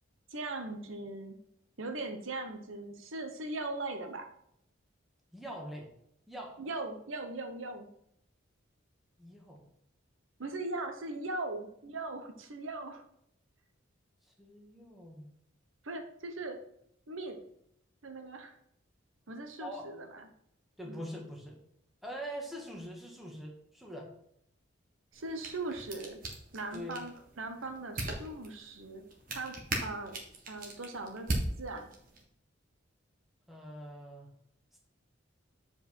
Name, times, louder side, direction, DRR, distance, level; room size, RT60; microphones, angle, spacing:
voice 1, 0.3-1.4 1.8-4.3 6.6-7.9 10.4-13.0 15.8-16.6 17.1-17.4 18.0-18.6 19.3-20.3 20.9-21.1 25.1-26.2 26.5-29.0 29.3-29.5 29.8-31.3 31.6-31.9, right 2 dB, 75° right, 5 dB, 1.0 m, -39 dB
voice 2, 5.3-5.9 6.3-6.6 9.2-9.6 14.2-15.3 19.6-19.9 20.8-21.6 22.0-24.1 26.7-27.0 33.5-34.3 34.7-34.8, equal, ahead, -1 dB, 1.5 m, -43 dB
sound 1, 25.1-32.2, right 2 dB, 45° right, 1.6 m, -40 dB
7.9 x 4.9 x 4.3 m, 0.73 s
head